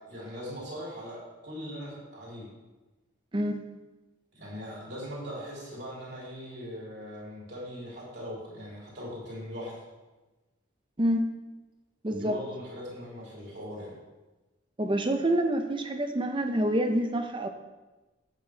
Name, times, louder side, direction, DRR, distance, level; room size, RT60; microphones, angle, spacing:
voice 1, 0.1-2.5 4.3-9.7 12.1-14.0, equal, 60° right, -5 dB, 3.4 m, -40 dB
voice 2, 12.0-12.4 14.8-17.5, right 1 dB, 25° right, 6 dB, 0.7 m, -27 dB
11.0 x 8.6 x 3.3 m, 1.1 s
head